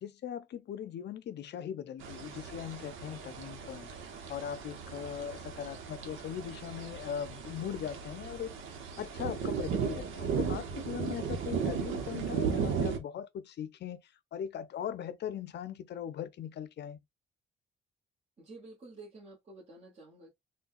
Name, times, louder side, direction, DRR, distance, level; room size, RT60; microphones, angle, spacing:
voice 1, 0.0-8.5 9.0-17.0, left 9 dB, 60° left, 0.6 m, -40 dB
sound 1, 2.0-13.0, right 6 dB, 85° right, 0.9 m, -36 dB
voice 2, 18.4-20.3, right 2 dB, 35° right, 1.3 m, -50 dB
3.9 x 2.2 x 2.5 m
cardioid pair, 90°, 20 cm